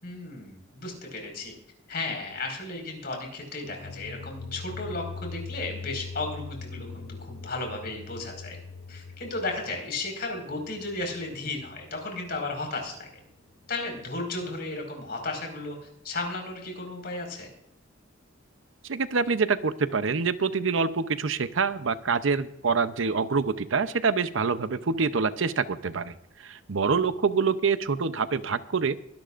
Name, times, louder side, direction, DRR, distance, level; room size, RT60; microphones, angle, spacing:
voice 1, 0.0-1.5 1.9-8.6 8.9-13.1 13.7-15.7 16.0-17.5, left 2 dB, 50° left, 2 dB, 5.0 m, -34 dB
sound 1, 3.7-12.5, left 4 dB, 75° left, 0.6 m, -42 dB
voice 2, 18.9-26.1 26.4-29.0, right 5 dB, 80° right, 12 dB, 0.7 m, -26 dB
23.0 x 12.0 x 2.5 m, 0.78 s
head